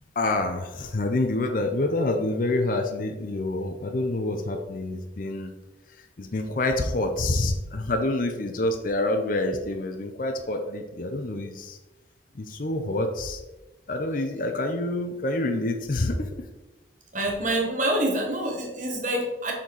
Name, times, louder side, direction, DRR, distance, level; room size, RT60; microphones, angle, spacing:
voice 1, 0.2-5.5 6.2-11.8 12.4-13.4 13.9-16.3, left 2 dB, 45° left, 5 dB, 0.6 m, -27 dB
voice 2, 17.1-19.5, right 1 dB, 40° right, 1 dB, 1.4 m, -26 dB
7.3 x 4.3 x 4.0 m, 1.1 s
head